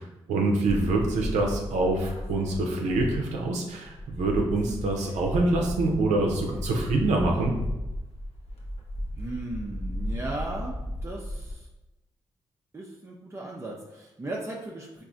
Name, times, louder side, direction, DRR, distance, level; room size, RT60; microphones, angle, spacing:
voice 1, 0.0-7.5, right 2 dB, 80° right, 1 dB, 0.6 m, -25 dB
sound 1, 0.7-3.5 3.8-11.6, equal, 60° left, 0.9 m, -35 dB
voice 2, 9.2-10.8 11.0-11.7 12.7-15.0, right 2 dB, 25° right, -2 dB, 0.5 m, -36 dB
3.8 x 2.6 x 2.4 m, 0.99 s
supercardioid pair, 45°, 12 cm